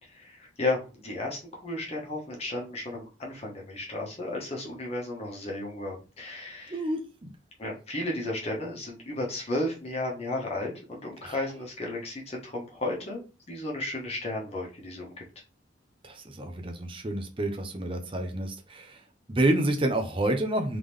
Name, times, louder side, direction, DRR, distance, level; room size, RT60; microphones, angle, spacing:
voice 1, 0.0-6.8 7.6-15.1, left 2 dB, 35° left, 1.2 m, -34 dB
voice 2, 6.7-7.3 11.2-11.4 16.0-19.0 19.3-20.8, right 1 dB, 30° right, 0.7 m, -29 dB
3.6 x 3.6 x 3.2 m
head